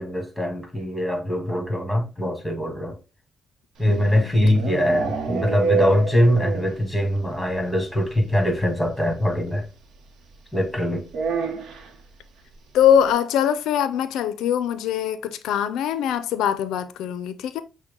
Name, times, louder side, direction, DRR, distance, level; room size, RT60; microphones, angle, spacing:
voice 1, 0.0-2.9 3.8-9.6 10.5-11.0, equal, 5° left, 1.8 m, -22 dB
voice 2, 3.8-4.4 12.7-17.6, left 9 dB, 90° left, 0.4 m, -22 dB
sound 1, 3.8-6.9 7.2-7.3 7.6-7.7 7.9-8.0 9.3-9.4 11.1-11.9, right 4 dB, 75° right, 0.8 m, -27 dB
6.2 x 2.1 x 3.7 m
cardioid pair, 75°, 0 cm